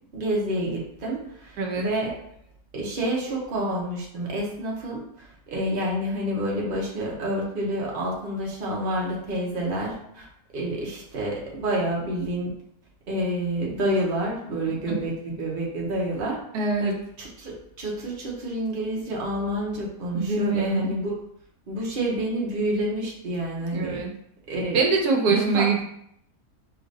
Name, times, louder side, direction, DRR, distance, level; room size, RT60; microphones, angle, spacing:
voice 1, 0.1-2.2 2.7-10.3 10.5-12.5 13.1-16.4 16.8-21.2 21.7-24.0 24.5-24.8 25.3-25.7, right 1 dB, 40° right, -3 dB, 1.0 m, -28 dB
voice 2, 1.6-1.9 14.9-15.0 16.5-16.9 20.1-20.9 23.7-24.1 24.7-25.8, right 4 dB, 90° right, 1 dB, 1.3 m, -24 dB
4.8 x 2.9 x 2.7 m, 0.72 s
omnidirectional pair, 1.6 m